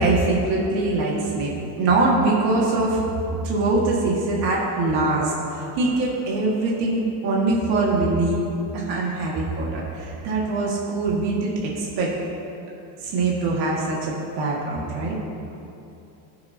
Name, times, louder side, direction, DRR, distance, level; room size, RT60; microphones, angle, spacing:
voice 1, 0.0-3.0 3.4-8.4 8.7-12.1 13.0-15.2, right 2 dB, 60° right, -4 dB, 1.9 m, -23 dB
18.5 x 6.7 x 2.8 m, 2.8 s
cardioid pair, 130°, 46 cm